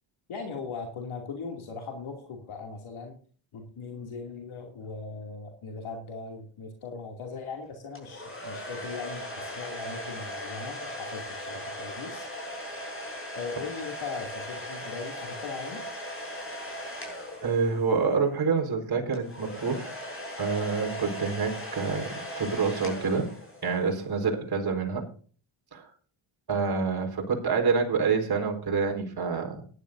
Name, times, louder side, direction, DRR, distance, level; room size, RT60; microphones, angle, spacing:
voice 1, 0.3-3.2 3.5-12.3 13.3-15.8, left 4 dB, 70° left, 2 dB, 2.7 m, -39 dB
sound 1, 7.9-18.1 19.1-23.9, equal, 25° left, 6.5 m, -38 dB
voice 2, 17.4-20.0 20.4-23.3 23.6-25.1 25.7-25.9 26.5-29.7, right 5 dB, 45° right, 2 dB, 4.4 m, -27 dB
18.5 x 11.0 x 2.6 m, 0.41 s
cardioid pair, 80°, 50 cm